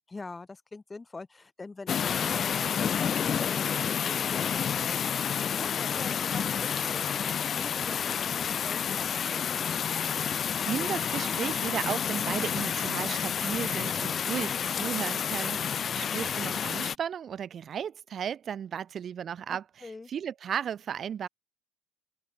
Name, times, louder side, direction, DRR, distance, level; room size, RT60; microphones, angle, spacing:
voice 1, 0.1-5.0 5.4-8.0 8.4-9.7 19.5-20.1, left 3 dB, 20° left, 4.7 m, -45 dB
sound 1, 1.9-17.0, left 8 dB, 40° left, 1.1 m, -29 dB
voice 2, 10.7-21.3, right 8 dB, 45° right, 4.2 m, -35 dB
open air
figure-of-eight pair, 55°, 0 cm